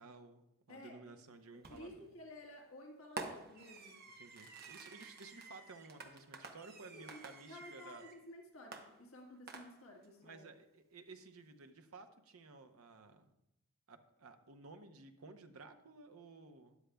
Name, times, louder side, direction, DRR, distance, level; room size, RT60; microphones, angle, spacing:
voice 1, 0.0-2.1 4.2-8.1 10.2-13.3 13.9-16.8, right 3 dB, 80° right, 7 dB, 0.8 m, -55 dB
voice 2, 0.7-1.2 1.5-4.1 6.9-7.2 7.5-10.5, left 1 dB, 70° left, 1 dB, 1.5 m, -54 dB
Fireworks, 1.6-2.0 3.2-8.2 8.7-10.1, right 3 dB, 45° right, 0.9 m, -50 dB
13.0 x 10.0 x 2.3 m, 0.84 s
head